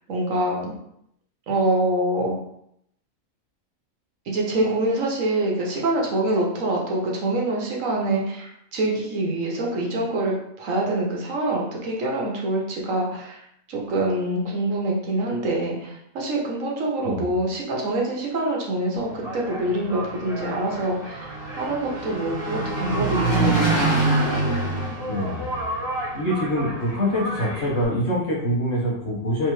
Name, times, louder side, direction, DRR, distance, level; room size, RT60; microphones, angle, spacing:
voice 1, 0.1-0.7 1.5-2.4 4.3-13.4 13.7-21.3 21.6-23.8, right 1 dB, 70° right, -2 dB, 1.2 m, -25 dB
Engine, 19.0-27.9, right 2 dB, 35° left, 1.9 m, -26 dB
voice 2, 25.1-25.5 26.1-29.5, equal, 55° left, -6 dB, 1.5 m, -25 dB
3.5 x 3.4 x 3.1 m, 0.76 s
omnidirectional pair, 1.4 m